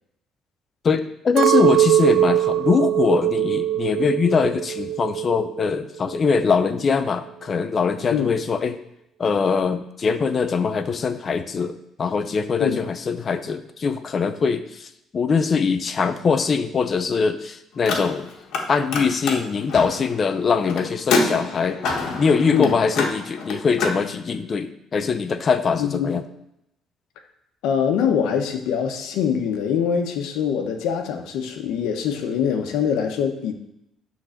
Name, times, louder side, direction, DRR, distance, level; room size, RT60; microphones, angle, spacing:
voice 1, 0.8-8.8 9.2-18.3 18.7-21.8 22.2-26.2, left 5 dB, 30° left, 10 dB, 0.6 m, -22 dB
Chink clink, 1.4-5.7 6.0-6.8, right 12 dB, 65° right, 0.4 m, -21 dB
Car, 17.7-18.6 18.9-24.0, left 4 dB, 65° left, 1.5 m, -26 dB
voice 2, 25.8-26.1 27.6-33.5, left 7 dB, 85° left, 5 dB, 1.1 m, -23 dB
10.0 x 3.9 x 6.5 m, 0.81 s
cardioid pair, 160°, 0 cm